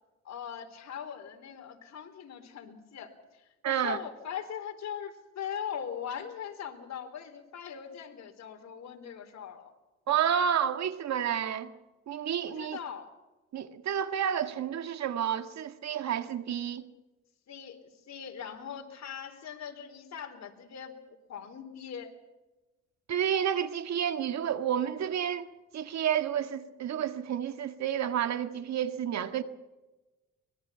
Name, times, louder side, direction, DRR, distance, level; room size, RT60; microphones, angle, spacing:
voice 1, 0.2-9.7 12.4-13.1 17.5-22.1, left 8 dB, 60° left, 3.9 m, -41 dB
voice 2, 3.6-4.0 10.1-11.7 12.1-12.8 13.5-16.9 23.1-25.5 25.7-29.4, right 9 dB, 65° right, 1.8 m, -30 dB
24.0 x 21.5 x 5.8 m
cardioid pair, 90°, 30 cm